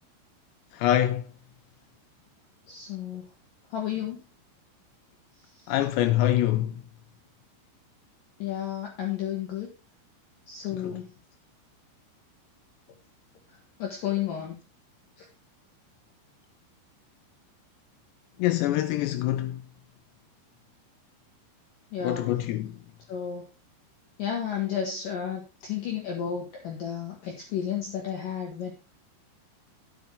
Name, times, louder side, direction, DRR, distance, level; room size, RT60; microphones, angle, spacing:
voice 1, 0.7-1.3 5.7-6.8 10.7-10.9 18.4-19.6 22.0-22.7, left 13 dB, 90° left, 2.4 m, -25 dB
voice 2, 2.7-3.2 3.7-4.2 8.4-9.7 10.5-11.0 13.8-14.6 21.9-22.3 23.1-23.5 24.2-28.7, left 9 dB, 65° left, 2.2 m, -32 dB
10.5 x 7.6 x 3.8 m
omnidirectional pair, 5.7 m